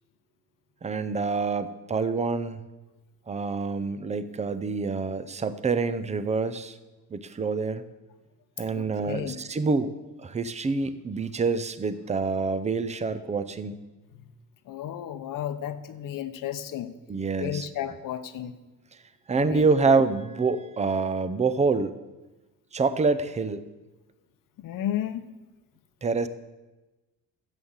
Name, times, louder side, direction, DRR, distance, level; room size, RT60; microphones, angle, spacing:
voice 1, 0.8-2.6 3.3-6.8 7.1-7.8 8.6-9.9 10.2-13.8 17.1-17.7 19.3-21.9 22.7-23.6 26.0-26.3, right 4 dB, 20° right, 13 dB, 0.6 m, -26 dB
voice 2, 8.7-9.4 14.7-16.9 17.4-18.6 19.3-19.7 24.6-25.3, left 11 dB, 65° left, 11 dB, 0.9 m, -33 dB
12.5 x 8.0 x 7.2 m, 1.1 s
cardioid pair, 160°, 35 cm